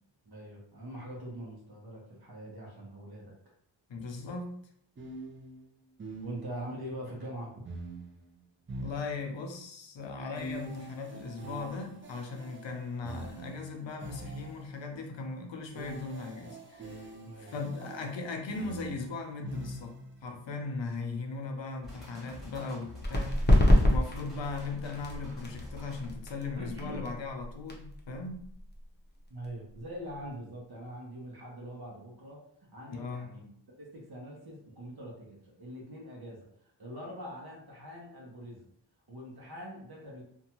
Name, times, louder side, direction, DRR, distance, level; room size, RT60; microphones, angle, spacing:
voice 1, 0.2-3.3 6.2-7.6 17.2-17.6 26.5-27.0 29.3-36.5 36.8-38.7 39.1-40.2, equal, 55° right, -3 dB, 0.8 m, -43 dB
voice 2, 3.9-4.5 8.7-17.1 17.4-19.9 20.2-28.4 32.9-33.3, left 3 dB, 75° left, 3 dB, 0.6 m, -38 dB
sound 1, 3.9-4.1 5.0-6.8 7.6-9.6 10.3-14.9 15.7-20.2, right 1 dB, 30° right, 0.4 m, -44 dB
sound 2, 21.8-26.1, left 1 dB, ahead, 1.1 m, -49 dB
sound 3, 23.0-30.3, left 1 dB, 25° left, 0.6 m, -28 dB
2.6 x 2.2 x 2.8 m, 0.68 s
wide cardioid pair, 70°, 45 cm